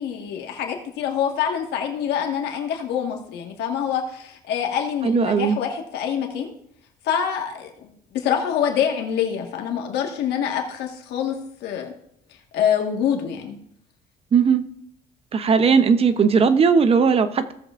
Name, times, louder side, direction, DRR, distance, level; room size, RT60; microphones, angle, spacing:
voice 1, 0.0-6.5 7.0-11.9 12.5-13.6, left 8 dB, 80° left, 2 dB, 1.6 m, -25 dB
voice 2, 5.0-5.6 14.3-14.7 15.3-17.5, right 6 dB, 35° right, 10 dB, 0.7 m, -18 dB
16.5 x 6.8 x 2.5 m, 0.72 s
cardioid pair, 110°, 17 cm